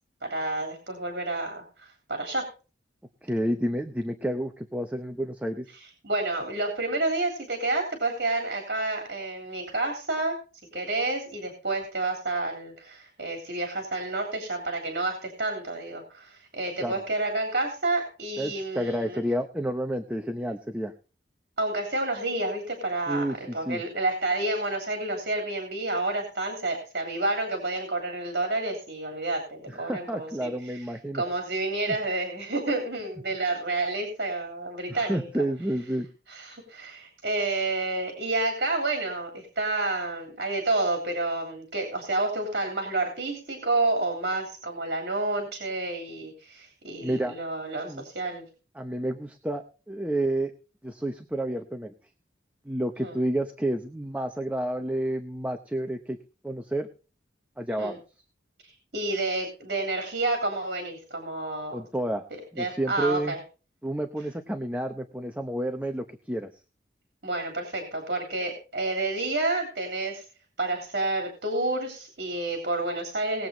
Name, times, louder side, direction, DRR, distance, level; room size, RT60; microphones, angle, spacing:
voice 1, 0.2-2.5 5.7-10.4 10.7-19.2 21.6-23.3 23.5-30.9 31.1-35.3 36.3-48.4 53.0-53.2 57.8-58.0 58.6-61.9 62.3-63.4 67.2-70.2 70.6-73.5, right 2 dB, 60° right, 3 dB, 3.4 m, -29 dB
voice 2, 3.2-5.7 16.8-16.9 18.4-20.9 23.1-23.8 29.7-31.2 31.9-32.0 34.9-36.1 47.0-47.4 47.8-48.0 48.7-50.5 50.8-51.9 52.6-56.2 56.4-56.9 57.6-58.0 61.7-62.2 62.5-63.3 63.8-66.5, right 1 dB, 10° right, 5 dB, 0.8 m, -30 dB
19.5 x 7.9 x 3.9 m, 0.35 s
head